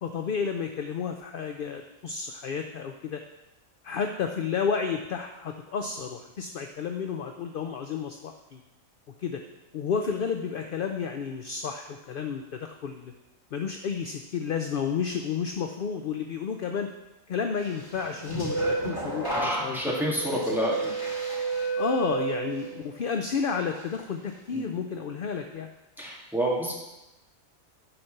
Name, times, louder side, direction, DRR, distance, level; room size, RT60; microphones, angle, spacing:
voice 1, 0.0-3.2 3.8-8.6 9.2-9.4 9.7-13.1 13.5-16.9 17.3-19.9 20.3-20.4 21.7-25.7, left 6 dB, 60° left, 5 dB, 0.6 m, -31 dB
sound 1, 17.9-23.0 23.4-23.8, right 3 dB, 15° left, 2.4 m, -31 dB
voice 2, 19.3-20.9 24.5-24.7 26.0-26.7, equal, ahead, -5 dB, 2.1 m, -29 dB
9.9 x 4.4 x 6.5 m, 0.99 s
omnidirectional pair, 1.4 m